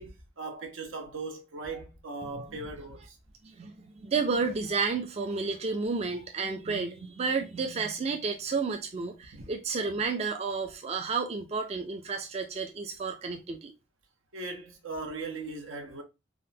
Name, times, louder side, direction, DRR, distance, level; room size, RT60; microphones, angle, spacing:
voice 1, 0.0-3.2 9.3-9.5 14.3-16.0, right 3 dB, 85° right, 0.8 m, -39 dB
voice 2, 3.4-13.7, right 4 dB, 30° right, 0.3 m, -31 dB
3.5 x 2.1 x 2.6 m
head